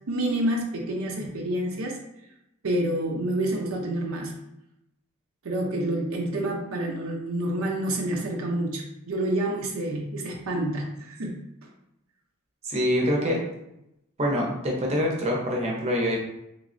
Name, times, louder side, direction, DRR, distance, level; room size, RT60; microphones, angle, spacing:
voice 1, 0.1-2.0 2.6-4.4 5.4-11.4, right 1 dB, 70° right, 1 dB, 0.5 m, -28 dB
voice 2, 12.6-13.4 14.2-16.2, equal, 30° right, -2 dB, 0.7 m, -25 dB
3.4 x 3.1 x 2.5 m, 0.85 s
head